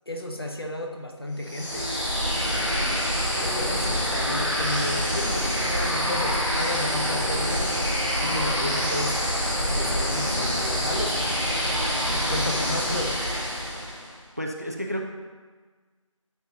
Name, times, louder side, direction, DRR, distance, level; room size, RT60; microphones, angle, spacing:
voice 1, 0.1-2.0 2.7-7.7 8.2-9.4 9.7-11.2 12.1-13.2, left 1 dB, 45° left, 2 dB, 1.0 m, -33 dB
sound 1, 1.4-14.1, equal, ahead, 2.0 m, -26 dB
voice 2, 14.4-15.0, equal, 30° right, 2 dB, 0.5 m, -30 dB
12.5 x 6.9 x 2.9 m, 1.4 s
figure-of-eight pair, 170°, 17 cm